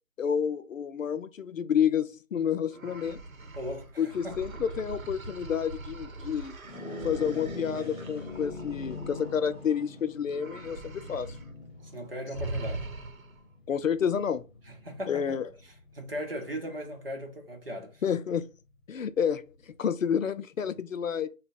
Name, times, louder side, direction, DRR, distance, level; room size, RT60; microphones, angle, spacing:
voice 1, 0.2-3.2 4.0-6.5 7.0-11.3 13.7-14.4 15.1-15.5 18.0-18.5 18.9-21.3, left 7 dB, 70° left, 0.5 m, -29 dB
sound 1, 2.7-9.9 10.3-11.5 11.8-12.0 12.3-13.5, right 2 dB, 80° right, 0.8 m, -42 dB
voice 2, 3.6-4.3 11.9-12.9 14.7-15.4 15.9-18.0, equal, 45° right, 0.9 m, -38 dB
sound 2, 6.6-16.2, left 3 dB, 45° left, 0.8 m, -43 dB
4.8 x 2.2 x 2.6 m
figure-of-eight pair, 170°, 41 cm